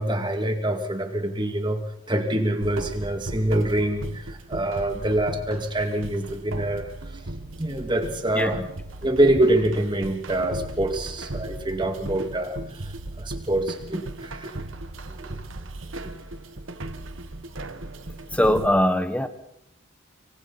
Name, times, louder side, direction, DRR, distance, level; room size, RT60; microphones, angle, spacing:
voice 1, 0.0-1.8 2.1-7.2 7.6-8.6 9.0-12.6 12.8-14.5 15.1-15.4 16.0-16.1, right 1 dB, 20° right, 5 dB, 2.3 m, -25 dB
sound 1, 2.6-18.7, right 2 dB, 70° right, 1.4 m, -37 dB
voice 2, 8.3-8.7 18.3-19.3, left 1 dB, 5° left, 10 dB, 1.2 m, -21 dB
25.5 x 25.0 x 4.2 m, 0.74 s
head